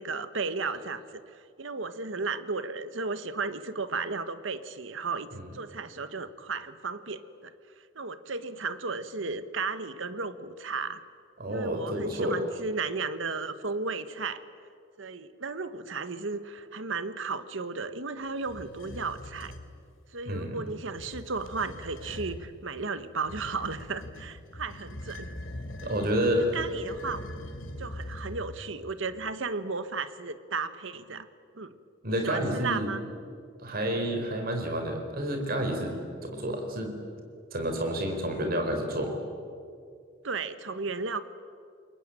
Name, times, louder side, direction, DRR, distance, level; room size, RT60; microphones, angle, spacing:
voice 1, 0.0-7.5 7.9-11.0 11.5-14.4 15.0-19.5 20.1-25.3 25.8-25.9 26.5-27.2 27.8-31.3 31.5-31.7 32.2-33.0 40.2-41.3, right 4 dB, 70° right, 12 dB, 1.3 m, -34 dB
voice 2, 11.4-12.4 20.3-20.6 25.8-26.5 32.0-32.9 33.6-36.0 36.2-36.9 37.5-39.2, equal, 50° right, 4 dB, 4.1 m, -29 dB
sound 1, 18.4-19.7 20.8-22.5 23.2-28.7, left 1 dB, 75° left, 3.2 m, -42 dB
29.0 x 22.5 x 9.0 m, 2.3 s
head